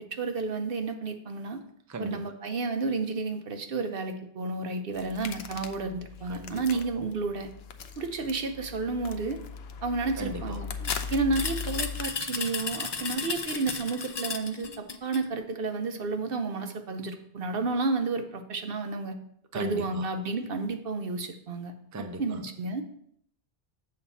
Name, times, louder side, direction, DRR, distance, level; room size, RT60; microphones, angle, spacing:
voice 1, 0.0-1.6 2.0-7.5 8.0-9.4 9.8-19.1 19.5-21.7 22.2-22.8, right 3 dB, 65° right, 6 dB, 1.0 m, -31 dB
voice 2, 1.9-2.3 6.3-6.8 10.2-10.6 19.5-20.1 21.9-22.4, right 1 dB, 20° right, 6 dB, 0.6 m, -38 dB
sound 1, 4.9-12.1, left 6 dB, 80° left, 0.9 m, -39 dB
sound 2, 10.8-15.3, left 4 dB, 35° left, 0.4 m, -34 dB
7.7 x 4.2 x 7.0 m, 0.68 s
omnidirectional pair, 1.0 m